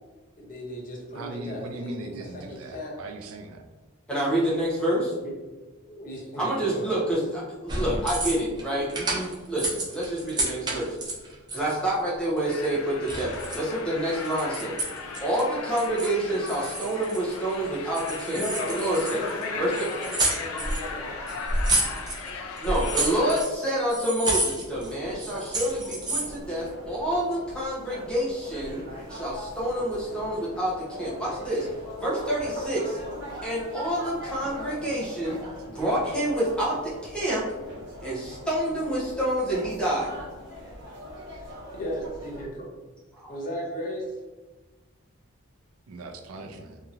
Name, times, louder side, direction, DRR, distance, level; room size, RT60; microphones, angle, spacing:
voice 1, 0.4-2.9 5.2-5.3 5.9-7.0 18.3-21.6 41.3-42.7 43.3-44.1, equal, 40° left, -2 dB, 0.7 m, -36 dB
voice 2, 1.1-3.7 45.9-46.8, right 2 dB, 85° right, 5 dB, 0.4 m, -39 dB
voice 3, 4.1-5.1 6.4-11.0 11.5-14.8 15.2-18.4 18.7-19.2 19.6-19.7 22.6-28.8 29.1-31.7 32.0-33.0 33.4-35.4 35.7-37.4 38.0-40.1, right 1 dB, 5° left, -6 dB, 0.8 m, -28 dB
Key Sounds, 7.7-8.6 8.9-11.8 12.4-13.7 14.1-15.4 15.8-16.2 16.5-17.5 17.9-19.4 19.7-20.9 21.3-22.3 22.6-23.6 23.9-24.9 25.2-26.4, right 1 dB, 20° right, 0.5 m, -30 dB
sound 1, 12.5-23.4, left 4 dB, 85° left, 0.4 m, -37 dB
sound 2, 24.7-42.5, equal, 55° right, 0.9 m, -41 dB
2.9 x 2.7 x 2.5 m, 1.2 s
head